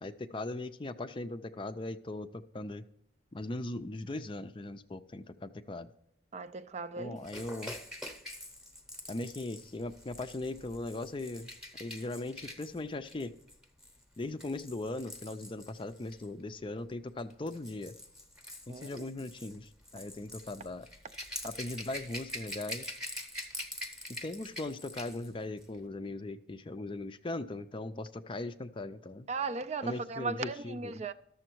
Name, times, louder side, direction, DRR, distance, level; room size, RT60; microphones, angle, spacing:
voice 1, 0.0-2.8 3.3-5.9 7.0-7.7 9.1-11.5 11.8-13.3 14.2-17.9 18.7-20.9 21.4-23.0 24.2-29.3 29.8-30.9, left 2 dB, 25° left, 0.4 m, -39 dB
voice 2, 6.3-7.2 7.5-7.6 18.7-19.0 29.3-31.1, right 4 dB, 35° right, 0.4 m, -37 dB
Rattle / Rattle (instrument), 7.2-16.3 17.2-25.3 25.6-25.7, left 1 dB, 5° right, 0.9 m, -45 dB
12.5 x 7.0 x 4.5 m
head